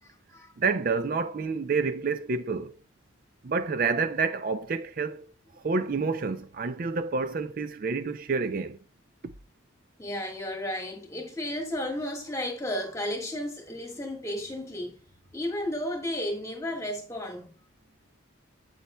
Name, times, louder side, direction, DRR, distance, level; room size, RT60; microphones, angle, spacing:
voice 1, 0.0-0.5 10.0-15.0 15.3-17.5, left 1 dB, 15° left, 1.5 m, -33 dB
voice 2, 0.6-2.8 3.4-8.8, right 4 dB, 45° right, 0.4 m, -29 dB
8.5 x 8.2 x 2.2 m
head